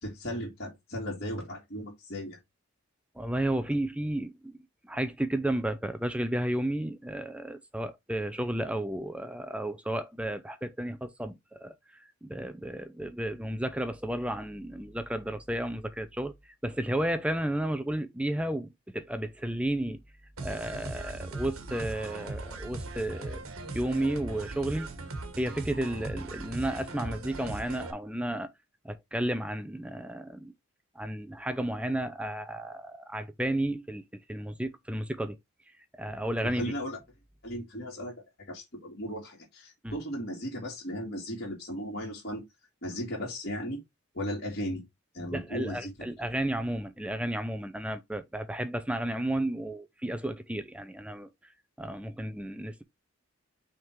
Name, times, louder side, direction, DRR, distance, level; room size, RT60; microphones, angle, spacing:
voice 1, 0.0-2.4 36.4-37.0 37.4-42.4 42.8-43.8 44.1-44.8 45.1-45.9, equal, 45° left, 2.5 m, -36 dB
voice 2, 3.2-4.5 4.9-11.7 12.2-16.3 16.6-20.0 20.4-23.4 23.7-24.9 25.4-28.5 28.8-30.5 31.0-34.0 34.3-35.4 36.0-36.7 39.8-39.9 45.3-51.3 51.8-52.8, right 1 dB, 5° right, 0.5 m, -32 dB
sound 1, 20.4-27.9, right 2 dB, 75° right, 1.3 m, -39 dB
6.0 x 3.7 x 4.5 m
head